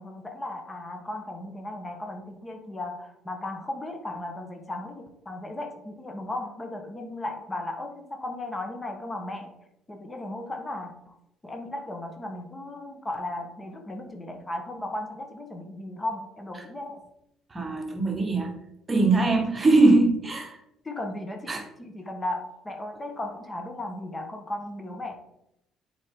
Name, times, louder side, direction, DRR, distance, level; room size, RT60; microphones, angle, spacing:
voice 1, 0.0-9.5 9.9-11.2 11.4-17.0 20.8-25.1, left 1 dB, 20° left, 4 dB, 1.3 m, -36 dB
voice 2, 17.5-18.5 18.9-20.6 21.5-21.6, right 2 dB, 30° right, 3 dB, 1.3 m, -21 dB
7.7 x 4.3 x 3.8 m, 0.81 s
supercardioid pair, 70°, 0 cm